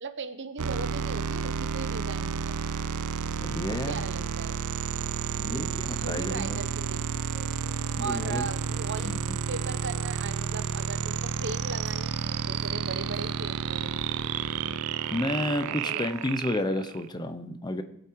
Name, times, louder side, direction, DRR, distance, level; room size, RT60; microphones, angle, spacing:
voice 1, 0.0-2.6 3.7-4.6 5.4-7.0 7.4-7.5 8.0-14.1 15.7-16.3, right 4 dB, 55° right, 9 dB, 1.0 m, -38 dB
sound 1, 0.6-17.1, right 7 dB, 80° right, 0.5 m, -31 dB
voice 2, 3.4-4.0 5.4-6.6 8.0-8.4 9.0-9.4 15.1-17.8, left 1 dB, 20° left, 9 dB, 0.7 m, -31 dB
sound 2, 4.2-14.8, right 1 dB, 25° right, 0.8 m, -51 dB
sound 3, 6.6-16.4, right 1 dB, ahead, 2.3 m, -55 dB
20.5 x 8.2 x 4.7 m, 0.76 s
head